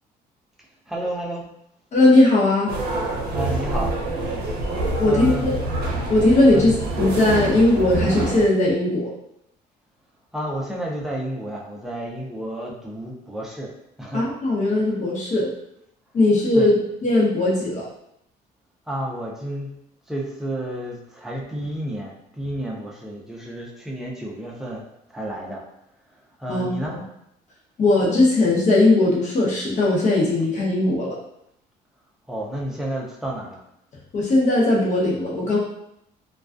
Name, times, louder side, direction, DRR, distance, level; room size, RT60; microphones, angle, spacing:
voice 1, 0.9-1.4 3.3-3.9 5.1-5.5 6.5-6.7 10.3-13.7 14.0-14.2 16.5-16.7 18.9-19.7 20.1-24.8 25.1-25.6 26.4-26.9 32.3-33.6, right 1 dB, ahead, -3 dB, 0.5 m, -30 dB
voice 2, 1.9-2.7 5.0-5.6 6.1-9.1 14.1-15.5 16.1-16.8 17.0-17.9 26.5-27.0 27.8-31.1 34.1-35.6, left 2 dB, 45° left, -5 dB, 0.9 m, -19 dB
sound 1, 2.7-8.4, right 2 dB, 70° right, 0.6 m, -26 dB
2.3 x 2.2 x 2.4 m, 0.77 s
cardioid pair, 110°, 17 cm